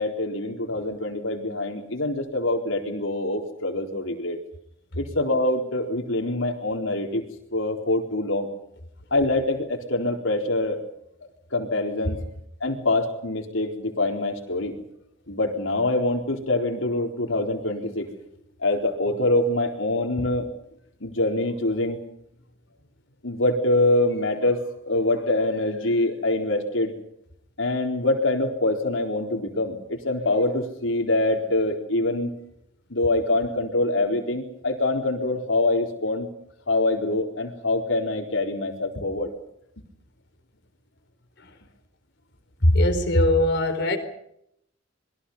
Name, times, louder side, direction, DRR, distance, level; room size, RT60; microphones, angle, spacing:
voice 1, 0.0-4.4 5.0-7.2 7.5-8.5 9.1-10.8 11.5-12.2 12.6-14.7 15.3-18.1 18.6-20.5 21.0-22.0 23.2-26.9 27.6-32.3 32.9-36.3 36.7-39.3, left 2 dB, 90° left, 4.2 m, -25 dB
voice 2, 42.6-44.0, left 1 dB, 60° left, 4.1 m, -20 dB
28.0 x 22.5 x 5.6 m
head